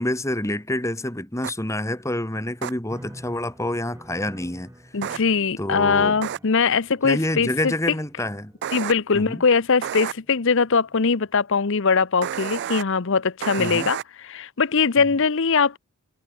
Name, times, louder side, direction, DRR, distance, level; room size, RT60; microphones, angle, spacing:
voice 1, 0.0-4.7 5.6-6.2 7.0-8.5 9.1-9.4 13.6-13.9, left 1 dB, 15° left, 1.9 m, -27 dB
sound 1, 1.4-1.5 2.6-2.7 5.0-5.2 6.2-6.4 8.6-8.9 9.8-10.1 12.2-12.8 13.4-14.0, right 9 dB, 55° right, 0.3 m, -29 dB
sound 2, 2.9-11.2, equal, 15° right, 1.8 m, -47 dB
voice 2, 4.9-7.7 8.7-14.0 14.2-15.8, left 5 dB, 60° left, 0.8 m, -21 dB
head